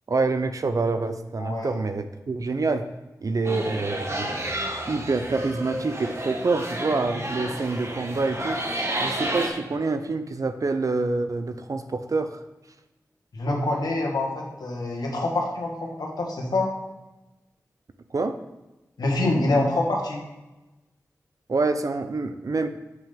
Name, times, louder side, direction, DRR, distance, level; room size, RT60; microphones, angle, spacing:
voice 1, 0.1-2.9 3.2-4.4 4.9-12.4 18.1-18.4 21.5-22.7, right 3 dB, 60° right, 9 dB, 0.7 m, -26 dB
voice 2, 1.4-1.8 13.3-16.7 19.0-20.2, left 2 dB, 80° left, 0 dB, 1.6 m, -26 dB
sound 1, 3.4-9.5, right 1 dB, 45° right, 1.4 m, -31 dB
7.6 x 5.3 x 3.7 m, 1.0 s
cardioid pair, 40°, 7 cm